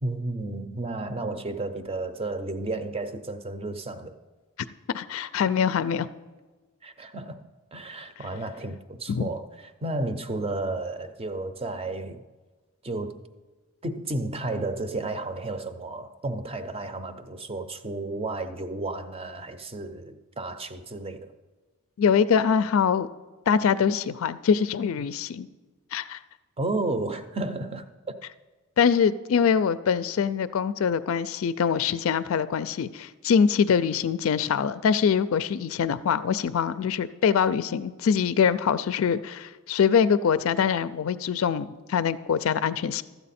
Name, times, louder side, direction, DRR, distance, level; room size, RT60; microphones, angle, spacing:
voice 1, 0.0-4.2 6.8-12.2 12.8-13.2 13.8-21.3 26.6-28.2, right 2 dB, 25° right, 9 dB, 0.6 m, -32 dB
voice 2, 4.9-6.1 9.1-9.3 22.0-23.1 23.5-25.5 25.9-26.2 28.8-43.0, left 7 dB, 70° left, 15 dB, 0.4 m, -24 dB
13.0 x 8.1 x 4.2 m, 1.3 s
head